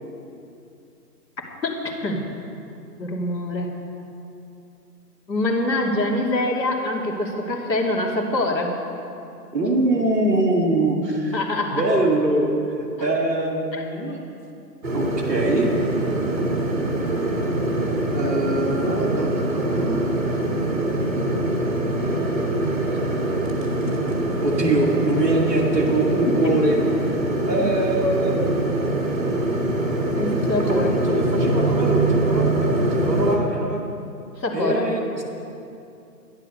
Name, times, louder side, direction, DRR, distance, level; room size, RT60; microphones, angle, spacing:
voice 1, 1.6-2.2 3.0-3.7 5.3-8.8 11.3-11.8 13.7-13.8 26.4-26.6 27.5-27.6 28.0-28.2 30.2-31.4 34.4-34.9, left 2 dB, 90° left, 0 dB, 3.0 m, -25 dB
voice 2, 9.5-11.4 11.7-12.5 13.0-14.2 14.9-15.7 18.1-20.1 24.4-26.7 27.5-28.4 30.6-33.8 34.5-35.2, right 2 dB, 10° right, -11 dB, 1.1 m, -23 dB
sound 1, 14.8-33.4, right 1 dB, 30° right, 2.0 m, -23 dB
13.0 x 11.0 x 6.6 m, 2.7 s
hypercardioid pair, 180°, 50 cm